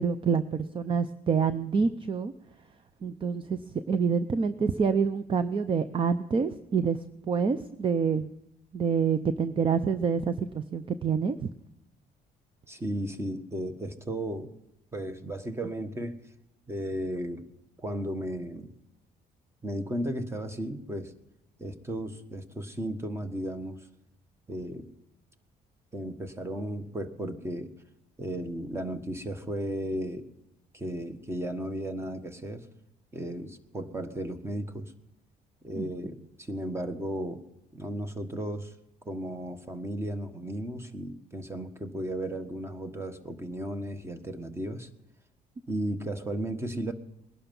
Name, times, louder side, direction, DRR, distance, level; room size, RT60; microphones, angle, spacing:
voice 1, 0.0-2.3 3.0-3.6 3.9-7.0 7.3-8.3 8.7-11.4 35.7-35.9, right 6 dB, 30° right, 12 dB, 0.7 m, -27 dB
voice 2, 12.7-14.5 14.9-16.2 16.7-17.4 17.8-18.7 19.6-21.1 21.6-23.9 24.5-24.9 25.9-27.7 28.2-30.3 30.7-32.7 33.1-34.9 35.6-37.4 37.7-38.7 39.0-44.9 45.7-46.9, right 1 dB, 15° right, 9 dB, 1.5 m, -35 dB
20.5 x 11.5 x 5.5 m, 0.89 s
cardioid pair, 110°, 17 cm